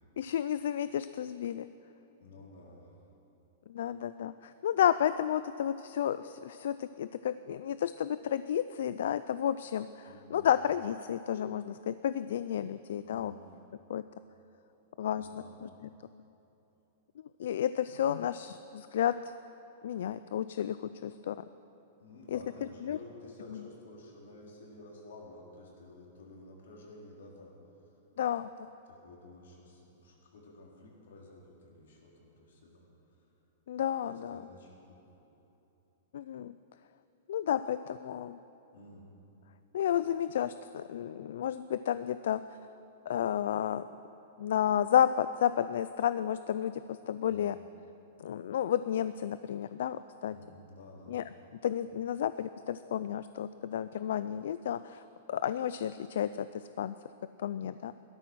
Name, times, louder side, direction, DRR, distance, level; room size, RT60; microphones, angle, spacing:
voice 1, 0.2-1.7 3.7-13.3 13.9-14.0 15.0-15.7 17.4-19.3 19.8-21.4 22.3-22.4 22.8-23.0 23.5-23.6 28.2-28.7 33.7-34.4 36.1-36.5 37.3-38.4 39.7-42.4 43.1-43.9 44.4-47.6 48.2-50.4 51.1-51.2 51.6-55.0 55.3-56.9 57.4-57.9, left 10 dB, 65° left, 13 dB, 0.4 m, -31 dB
voice 2, 2.2-2.9 10.1-10.4 13.0-13.4 15.1-15.6 22.0-27.5 28.9-32.8 34.1-35.1 38.7-39.1 47.2-47.5 50.2-51.1, left 2 dB, 80° left, -2 dB, 3.9 m, -52 dB
16.5 x 13.0 x 6.2 m, 3.0 s
supercardioid pair, 175°, 0 cm